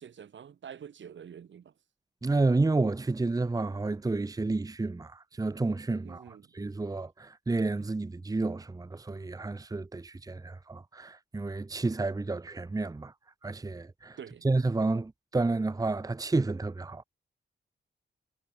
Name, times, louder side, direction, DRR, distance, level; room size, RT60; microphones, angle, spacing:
voice 1, 0.0-1.7 6.0-6.5 14.2-14.5, right 8 dB, 75° right, 2.3 m, -47 dB
voice 2, 2.2-13.1 13.4-14.2 14.4-17.0, right 3 dB, 20° right, 0.9 m, -30 dB
wide cardioid pair, 100°, 19 cm